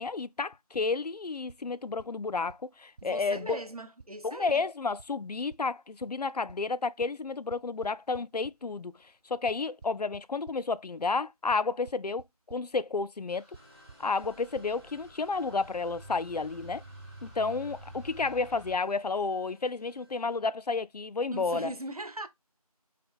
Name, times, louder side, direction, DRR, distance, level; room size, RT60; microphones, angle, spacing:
voice 1, 0.0-3.6 4.2-8.9 9.3-13.4 14.0-16.8 17.2-21.7, left 4 dB, 85° left, 0.5 m, -31 dB
sound 1, 1.5-1.6 2.0-2.1 2.5-2.6 3.0-3.1 3.5-3.6 4.0-4.1 4.5-4.6 5.0-5.1 5.5-5.6 6.0-6.1 6.5-6.6 7.0-7.1 7.5-8.5 9.5-10.6 11.5-11.6 11.9-12.2 12.5-12.6 13.5-13.6 13.9-14.0 14.2-14.3 14.5-14.7, right 4 dB, 90° right, 0.4 m, -48 dB
voice 2, 3.0-4.6 21.3-22.3, right 2 dB, 70° right, 0.8 m, -39 dB
sound 2, 13.3-18.8, right 1 dB, ahead, 0.7 m, -49 dB
sound 3, 13.5-20.4, equal, 40° right, 1.0 m, -60 dB
3.8 x 3.5 x 3.6 m
figure-of-eight pair, 180°, 20 cm